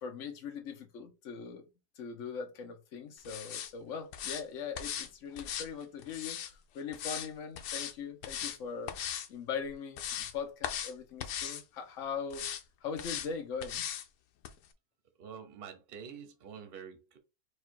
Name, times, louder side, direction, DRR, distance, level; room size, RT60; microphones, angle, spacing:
voice 1, 0.0-1.6 2.0-6.4 6.7-9.0 9.3-12.5 12.8-13.8, left 6 dB, 55° left, 1.2 m, -40 dB
sound 1, 3.3-3.7 4.1-4.4 4.8-5.1 5.4-6.5 6.9-7.3 7.6-7.9 8.2-8.6 8.9-9.3 9.7-10.3 10.6-10.9 11.2-11.6 12.3-12.6 13.0-13.3 13.6-14.1 14.4-14.5, left 9 dB, 80° left, 1.2 m, -38 dB
voice 2, 15.2-17.2, right 7 dB, 40° right, 1.0 m, -47 dB
4.8 x 2.4 x 4.5 m
omnidirectional pair, 1.7 m